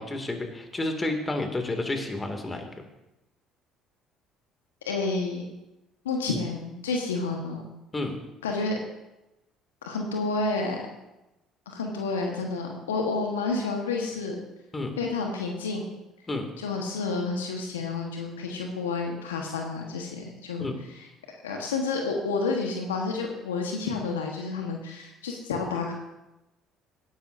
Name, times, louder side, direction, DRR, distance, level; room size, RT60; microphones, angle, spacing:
voice 1, 0.0-2.7 7.9-8.2 14.7-14.9 16.3-16.5 20.6-20.8, left 2 dB, 25° left, 4 dB, 2.4 m, -30 dB
voice 2, 4.8-5.4 6.0-7.6 8.4-8.8 9.8-10.9 11.7-14.4 15.0-15.8 16.6-20.7 20.9-21.0 21.4-25.9, left 3 dB, 85° left, 2 dB, 1.3 m, -30 dB
17.5 x 11.0 x 2.7 m, 0.97 s
hypercardioid pair, 55°, 0 cm